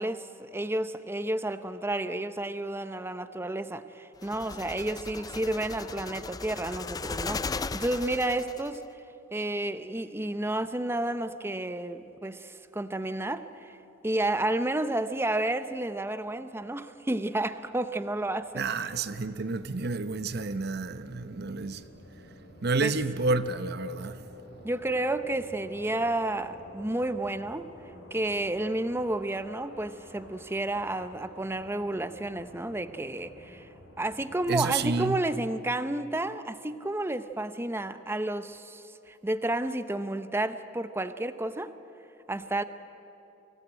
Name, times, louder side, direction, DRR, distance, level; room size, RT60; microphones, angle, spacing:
voice 1, 0.0-8.8 9.3-13.8 14.0-18.6 22.8-22.9 24.6-27.6 28.1-33.7 34.0-41.7 42.3-42.6, right 1 dB, 15° right, 0.7 m, -31 dB
sound 1, 4.2-8.8, left 4 dB, 20° left, 0.4 m, -37 dB
sound 2, 18.2-35.2, left 1 dB, 85° left, 4.9 m, -51 dB
voice 2, 18.5-21.8 22.6-24.2 34.5-35.2, right 3 dB, 55° right, 0.9 m, -29 dB
24.5 x 16.5 x 8.9 m
head